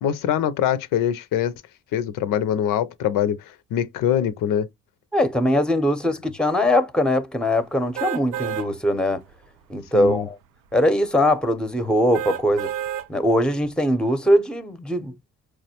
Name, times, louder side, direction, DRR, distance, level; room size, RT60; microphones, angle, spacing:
voice 1, 0.0-1.5 1.9-3.4 3.7-4.7 9.9-10.3, left 9 dB, 85° left, 0.5 m, -23 dB
voice 2, 5.1-9.2 9.7-10.4 10.7-12.7 13.1-15.1, left 1 dB, 5° left, 0.6 m, -21 dB
sound 1, 8.0-8.7 9.2-9.3 12.1-13.1 13.6-13.7, right 11 dB, 80° right, 0.5 m, -29 dB
4.8 x 2.1 x 2.8 m
cardioid pair, 70°, 32 cm